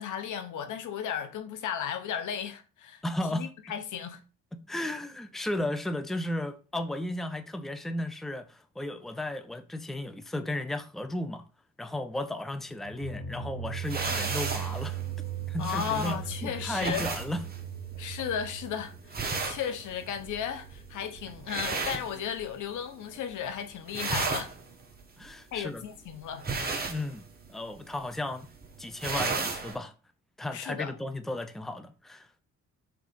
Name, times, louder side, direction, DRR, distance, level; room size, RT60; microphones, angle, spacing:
voice 1, 0.0-3.0 3.3-4.2 15.6-17.1 18.0-24.5 25.5-26.5 30.5-30.9, left 8 dB, 80° left, 1.1 m, -35 dB
voice 2, 3.0-3.5 4.5-11.4 11.8-15.0 15.5-17.4 25.2-25.8 26.9-28.5 28.8-29.9 30.4-32.3, left 1 dB, ahead, 0.6 m, -34 dB
sound 1, 12.9-21.7, right 8 dB, 50° left, 1.5 m, -39 dB
sound 2, 13.8-22.8 23.1-23.5 23.8-29.7, right 4 dB, 30° right, 1.5 m, -35 dB
5.0 x 3.7 x 5.2 m
cardioid pair, 90°, 30 cm